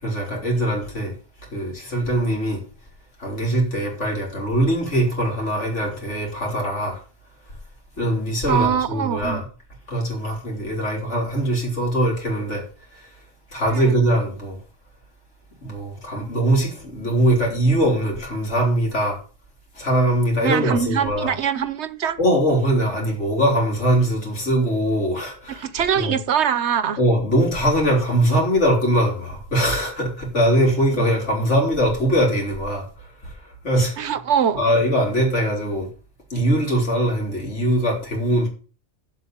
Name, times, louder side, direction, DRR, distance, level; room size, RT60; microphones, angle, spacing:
voice 1, 0.0-1.1 1.5-2.6 3.2-7.0 8.0-9.4 9.9-12.6 13.5-14.6 15.6-19.2 19.8-21.3 22.2-25.7 25.9-26.2 27.0-32.9 33.6-34.1 34.5-35.9 36.3-38.5, right 1 dB, 80° left, 3.9 m, -21 dB
voice 2, 8.5-9.4 13.7-13.9 20.4-22.2 25.5-27.0 31.0-31.1 34.0-34.6, right 8 dB, 70° right, 1.1 m, -23 dB
7.6 x 6.7 x 7.9 m
omnidirectional pair, 1.2 m